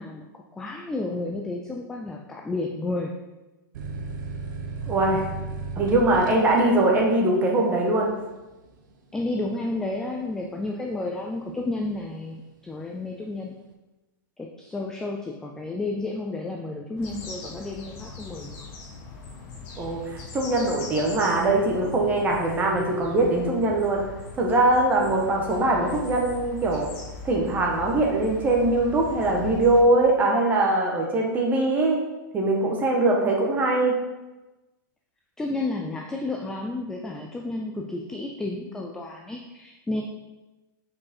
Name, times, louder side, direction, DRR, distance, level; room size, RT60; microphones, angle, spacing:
voice 1, 0.0-3.1 9.1-13.5 14.4-18.7 35.4-40.0, left 2 dB, 5° left, 1 dB, 0.3 m, -31 dB
sound 1, 3.7-11.0 11.5-12.2, right 4 dB, 65° right, 1.1 m, -36 dB
voice 2, 4.9-5.2 5.8-8.1 19.8-24.0 24.3-26.9 27.2-32.0 32.3-33.9, right 2 dB, 15° right, -1 dB, 1.2 m, -22 dB
sound 2, 17.0-29.8, left 4 dB, 35° left, 1.6 m, -40 dB
7.2 x 4.8 x 4.3 m, 1.1 s
supercardioid pair, 160°, 11 cm